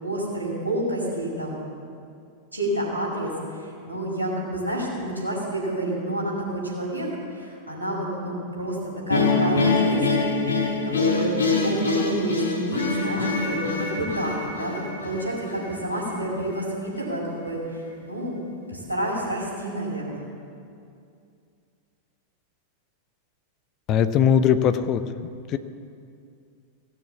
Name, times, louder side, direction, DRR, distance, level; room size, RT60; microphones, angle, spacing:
voice 1, 0.0-1.6 2.5-8.8 9.1-10.0 10.8-18.4 18.7-20.2, right 1 dB, 80° right, -4 dB, 4.6 m, -29 dB
sound 1, 9.1-16.2, left 3 dB, 70° left, 1.8 m, -24 dB
voice 2, 23.9-25.0 25.5-25.6, left 8 dB, 35° left, 11 dB, 0.7 m, -20 dB
17.0 x 7.3 x 8.4 m, 2.4 s
figure-of-eight pair, 90°, 0 cm